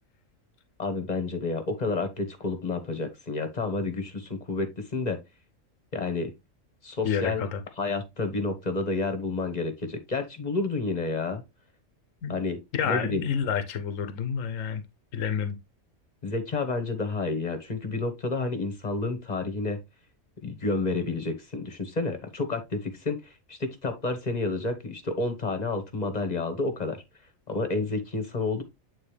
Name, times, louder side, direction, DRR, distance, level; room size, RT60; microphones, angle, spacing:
voice 1, 0.8-5.2 5.9-6.3 6.8-7.5 7.8-11.4 12.3-12.6 12.8-13.2 16.2-19.8 20.4-27.0 27.5-28.6, left 3 dB, 35° left, 1.4 m, -30 dB
voice 2, 7.0-7.6 12.2-12.4 12.7-14.8 15.1-15.6, left 7 dB, 80° left, 1.2 m, -29 dB
8.8 x 4.0 x 3.3 m
omnidirectional pair, 1.3 m